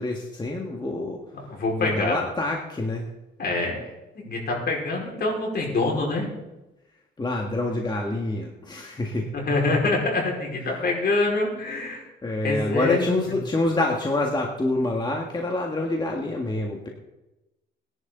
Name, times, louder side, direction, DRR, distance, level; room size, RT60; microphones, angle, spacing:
voice 1, 0.0-1.2 1.8-3.1 7.2-9.3 10.7-10.9 12.2-16.9, left 2 dB, 20° left, 0 dB, 1.9 m, -27 dB
voice 2, 1.3-2.2 3.4-3.8 4.2-6.3 9.3-12.0 12.4-13.3, left 3 dB, 55° left, -1 dB, 5.1 m, -25 dB
19.5 x 11.0 x 3.9 m, 0.98 s
cardioid pair, 90°, 20 cm